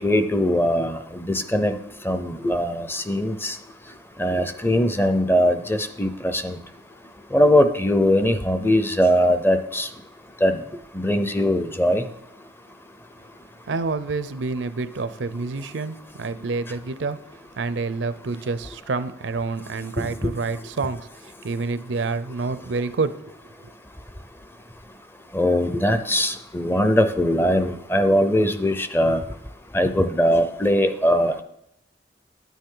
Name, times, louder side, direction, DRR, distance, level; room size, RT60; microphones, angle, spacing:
voice 1, 0.0-1.7 2.1-3.5 4.2-6.6 7.3-9.9 10.4-10.6 10.9-12.0 25.3-29.2 29.7-31.4, equal, 10° left, 9 dB, 0.5 m, -21 dB
voice 2, 13.7-17.2 17.6-23.7, right 4 dB, 80° right, 14 dB, 0.5 m, -28 dB
9.6 x 9.2 x 3.8 m, 0.78 s
head